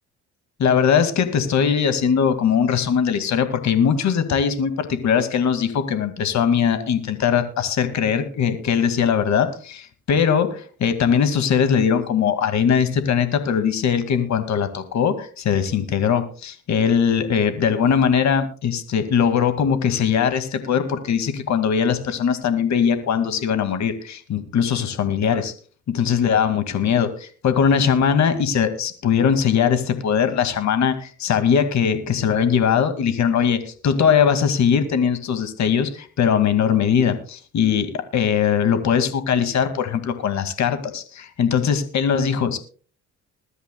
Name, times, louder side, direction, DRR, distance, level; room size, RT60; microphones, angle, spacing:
voice 1, 0.6-25.5 25.9-42.6, left 7 dB, 65° left, 9 dB, 2.2 m, -20 dB
21.5 x 12.5 x 2.3 m, 0.39 s
cardioid pair, 90°, 30 cm